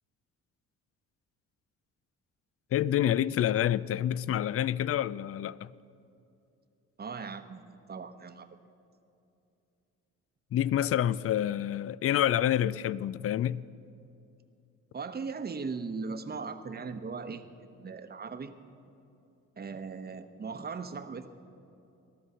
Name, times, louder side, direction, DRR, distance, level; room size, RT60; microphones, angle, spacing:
voice 1, 2.7-5.7 10.5-13.6, left 11 dB, 50° left, 0.4 m, -28 dB
voice 2, 7.0-8.5 14.9-18.5 19.6-21.3, right 4 dB, 30° right, 0.9 m, -38 dB
20.0 x 12.5 x 5.6 m
cardioid pair, 90°, 30 cm